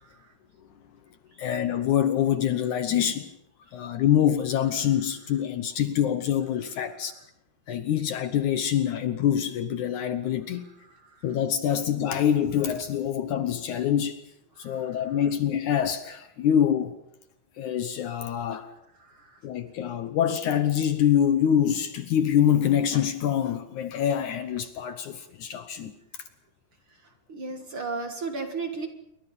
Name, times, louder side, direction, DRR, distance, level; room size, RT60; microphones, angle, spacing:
voice 1, 1.4-3.4 3.7-7.1 7.7-10.7 11.2-14.2 14.6-17.0 17.6-18.7 19.4-25.9, left 9 dB, 65° left, 10 dB, 2.1 m, -25 dB
voice 2, 27.3-28.9, right 4 dB, 45° right, 5 dB, 2.1 m, -33 dB
27.5 x 23.5 x 5.5 m, 0.83 s
omnidirectional pair, 4.2 m